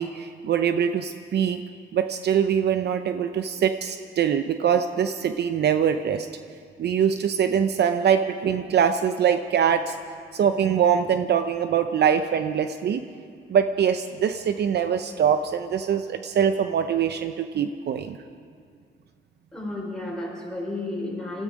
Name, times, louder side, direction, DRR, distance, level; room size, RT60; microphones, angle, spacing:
voice 1, 0.0-1.6 1.9-6.3 6.8-10.0 10.3-13.0 13.5-18.2, right 8 dB, 55° right, 9 dB, 0.7 m, -23 dB
voice 2, 19.5-21.4, left 2 dB, 5° left, -3 dB, 5.0 m, -32 dB
20.0 x 14.0 x 5.1 m, 2.2 s
cardioid pair, 90°, 20 cm